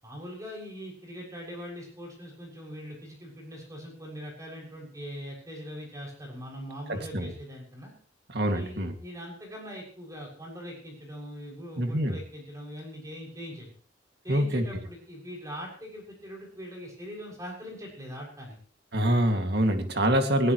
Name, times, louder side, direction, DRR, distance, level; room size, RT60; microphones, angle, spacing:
voice 1, 0.0-7.9 8.5-13.7 14.2-18.5, equal, 20° right, -1 dB, 6.7 m, -41 dB
voice 2, 6.9-7.3 8.3-8.9 11.8-12.2 14.3-14.6 18.9-20.5, right 1 dB, 60° right, 5 dB, 2.3 m, -25 dB
21.5 x 15.5 x 3.2 m, 0.41 s
head